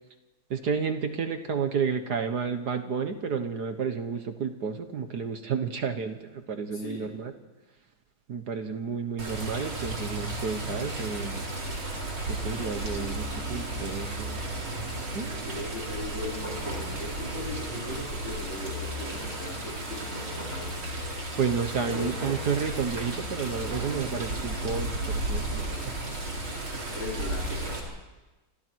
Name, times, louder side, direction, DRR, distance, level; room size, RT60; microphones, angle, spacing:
voice 1, 0.5-7.3 8.3-11.4 12.2-14.5 15.1-15.5 21.4-25.7, right 6 dB, 55° right, 7 dB, 1.7 m, -31 dB
voice 2, 6.7-7.3 15.3-20.7 21.7-22.2 25.4-26.2 26.9-27.9, left 2 dB, 65° left, -2 dB, 5.1 m, -39 dB
Water, 9.2-27.8, right 1 dB, 75° right, 5.0 m, -34 dB
28.5 x 25.5 x 4.7 m, 1.1 s
omnidirectional pair, 2.3 m